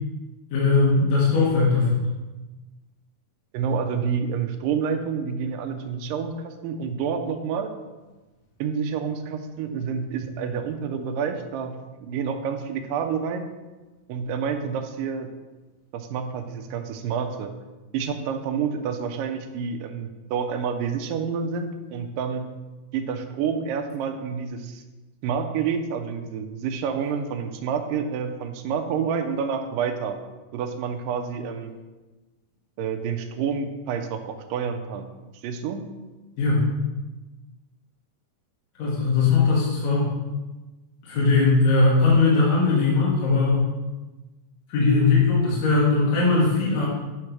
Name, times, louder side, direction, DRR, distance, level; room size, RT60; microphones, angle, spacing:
voice 1, 0.5-2.0 36.4-36.6 38.8-40.1 41.0-43.7 44.7-46.9, left 3 dB, 60° left, -7 dB, 2.6 m, -19 dB
voice 2, 3.5-7.7 8.6-13.5 14.1-15.3 15.9-17.5 17.9-22.5 22.9-24.8 25.2-30.2 30.5-31.7 32.8-35.1 35.4-35.9, right 6 dB, 80° right, 6 dB, 2.2 m, -28 dB
9.0 x 3.2 x 5.8 m, 1.2 s
omnidirectional pair, 4.0 m